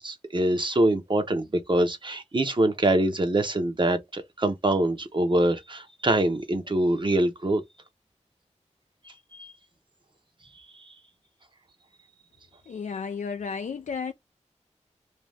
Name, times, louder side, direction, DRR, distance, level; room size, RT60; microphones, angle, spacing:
voice 1, 0.0-7.6 9.4-9.5, right 1 dB, 40° right, 0.8 m, -24 dB
voice 2, 12.7-14.1, left 5 dB, 80° left, 0.4 m, -33 dB
2.6 x 2.3 x 3.3 m
wide cardioid pair, 70°, 12 cm